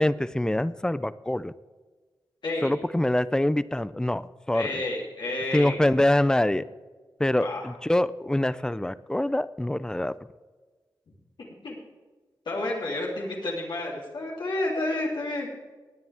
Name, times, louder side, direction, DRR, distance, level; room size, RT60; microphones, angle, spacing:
voice 1, 0.0-1.5 2.6-4.2 4.5-4.8 5.5-6.6 7.2-10.1, left 1 dB, 10° left, 16 dB, 0.5 m, -24 dB
voice 2, 4.5-5.8 7.4-7.7 11.1-11.2 11.6-11.8 12.4-15.5, left 2 dB, 75° left, -3 dB, 3.3 m, -30 dB
19.0 x 9.8 x 3.6 m, 1.3 s
wide cardioid pair, 85°, 8 cm